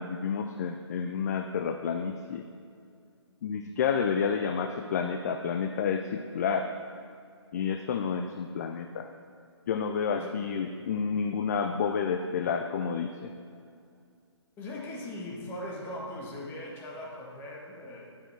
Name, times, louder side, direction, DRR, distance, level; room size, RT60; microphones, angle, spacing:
voice 1, 0.0-2.4 3.4-6.7 7.5-9.1 9.7-13.3, left 6 dB, 35° left, 6 dB, 0.4 m, -30 dB
voice 2, 14.6-18.1, left 1 dB, 15° left, -3 dB, 1.4 m, -39 dB
10.0 x 7.0 x 4.6 m, 2.3 s
figure-of-eight pair, 145°, 15 cm